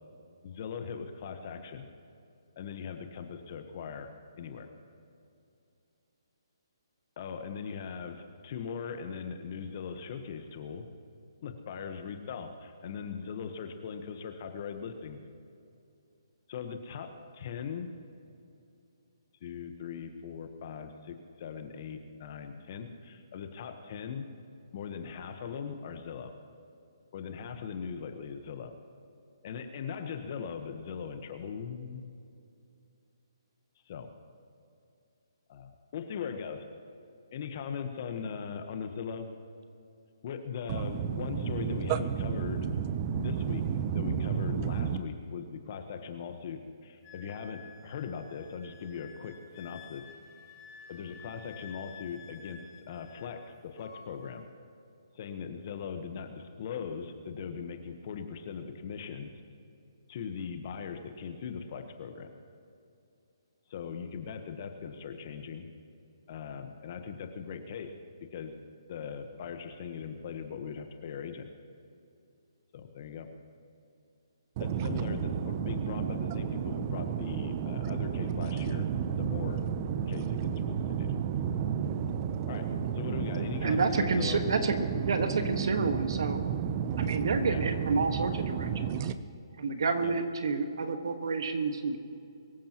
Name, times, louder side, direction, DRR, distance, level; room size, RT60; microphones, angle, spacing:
voice 1, 0.4-1.9 2.6-4.1 4.4-4.7 7.2-10.8 11.4-15.2 16.5-17.9 19.4-24.3 24.7-26.3 27.1-28.7 29.4-32.1 33.9-34.1 35.5-36.6 37.3-39.3 40.2-42.7 43.1-43.6 43.9-50.0 50.9-52.6 52.9-54.4 55.1-59.3 60.1-62.3 63.7-65.6 66.3-67.9 68.3-68.5 68.9-71.4 72.7-73.3 74.6-78.9 79.2-79.6 80.1-81.1 82.5-82.7 82.9-84.5 87.5-87.6 90.0-90.1, left 6 dB, 45° left, 7 dB, 1.3 m, -40 dB
voice 2, 40.7-45.0 74.6-89.1, right 8 dB, 30° right, 13 dB, 0.8 m, -32 dB
Wind instrument woodwind instrument, 47.0-53.4 53.7-54.4, left 6 dB, 25° left, 2.2 m, -52 dB
voice 3, 83.4-84.8 85.0-86.4 87.0-89.1 89.6-92.0, right 4 dB, 65° right, 7 dB, 1.6 m, -29 dB
23.5 x 14.5 x 3.1 m, 2.6 s
hypercardioid pair, 145°, 3 cm